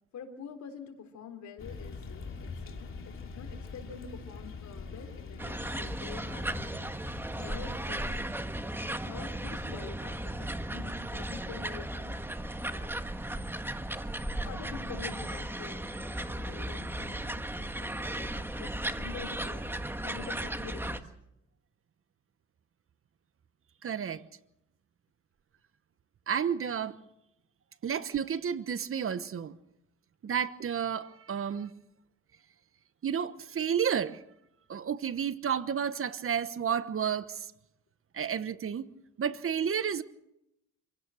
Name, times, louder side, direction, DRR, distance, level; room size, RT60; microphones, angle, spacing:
voice 1, 0.1-6.9 7.4-8.2 9.0-13.0 14.4-15.9 16.1-19.7 20.0-21.1, left 6 dB, 65° left, 3.7 m, -47 dB
sound 1, 1.6-8.8, left 4 dB, 45° left, 2.9 m, -44 dB
sound 2, 5.4-21.0, right 1 dB, 5° right, 1.5 m, -36 dB
voice 2, 23.8-24.2 26.3-27.0 27.8-29.5 30.2-31.7 33.0-34.2 34.7-37.5 38.1-38.8 39.2-40.0, right 8 dB, 45° right, 1.2 m, -31 dB
26.5 x 16.5 x 6.4 m
cardioid pair, 90°, 30 cm